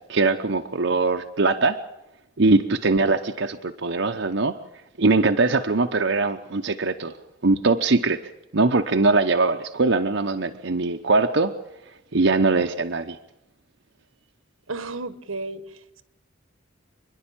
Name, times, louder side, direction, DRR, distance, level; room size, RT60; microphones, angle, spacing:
voice 1, 0.1-1.8 2.4-4.5 5.0-7.1 7.4-8.2 8.5-11.5 12.1-13.2, right 3 dB, 60° right, 4 dB, 0.9 m, -21 dB
voice 2, 14.7-16.0, right 3 dB, 85° right, 12 dB, 1.4 m, -33 dB
27.5 x 11.0 x 8.8 m, 0.90 s
head